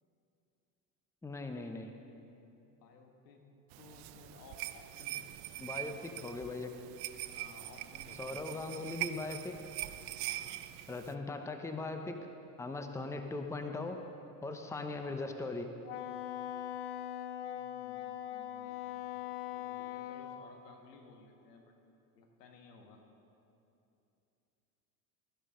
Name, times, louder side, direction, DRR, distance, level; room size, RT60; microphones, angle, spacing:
voice 1, 1.2-1.9 5.6-6.7 8.2-9.6 10.9-12.3 12.6-14.0 14.4-15.7, left 3 dB, 5° left, 6 dB, 0.8 m, -39 dB
voice 2, 2.6-3.5 3.8-5.5 5.8-6.2 7.3-8.9 10.3-10.6 14.5-14.8 17.4-21.7 22.1-23.0, left 4 dB, 85° left, 3 dB, 1.5 m, -58 dB
sound 1, 3.7-11.1, right 15 dB, 55° right, 0.6 m, -43 dB
Wind instrument woodwind instrument, 15.8-20.4, left 12 dB, 55° left, 0.7 m, -41 dB
13.5 x 11.0 x 3.8 m, 2.8 s
hypercardioid pair, 90°, 47 cm